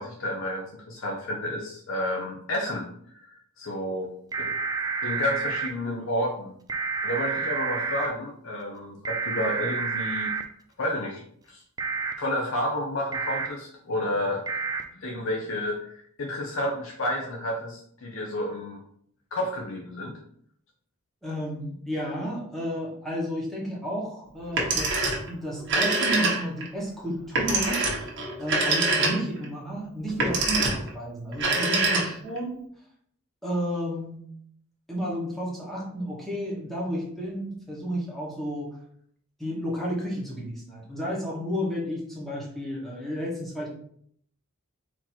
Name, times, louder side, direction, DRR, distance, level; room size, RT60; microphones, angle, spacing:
voice 1, 0.0-2.9 3.1-4.1 4.4-4.6 5.0-6.6 7.0-10.3 10.8-11.2 11.5-11.6 12.2-14.4 14.9-18.8 19.3-20.2, left 1 dB, 65° left, 0 dB, 0.7 m, -30 dB
sound 1, 4.3-5.7 6.7-8.1 9.1-10.4 11.8-12.1 13.1-13.5 14.5-14.8, right 5 dB, 20° right, 0.3 m, -29 dB
voice 2, 21.2-25.0 25.3-27.8 28.4-32.6 33.4-34.3 34.9-38.8 39.4-43.7, equal, ahead, -5 dB, 1.2 m, -32 dB
Telephone, 24.4-25.3 25.6-26.7 27.3-29.4 30.1-30.9 31.3-32.4, right 3 dB, 60° right, 1.2 m, -25 dB
4.2 x 2.9 x 4.3 m, 0.65 s
head